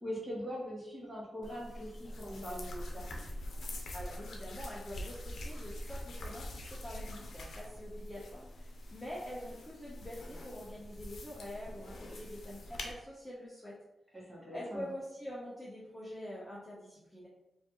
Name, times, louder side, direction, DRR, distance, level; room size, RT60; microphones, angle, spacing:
voice 1, 0.0-3.0 14.1-14.8, equal, 15° right, -5 dB, 1.3 m, -42 dB
sound 1, 1.4-12.9, left 1 dB, 70° left, 0.7 m, -44 dB
voice 2, 3.9-13.8 14.5-17.3, left 1 dB, 10° left, -7 dB, 0.7 m, -45 dB
4.8 x 2.6 x 2.8 m, 0.91 s
wide cardioid pair, 150°, 0 cm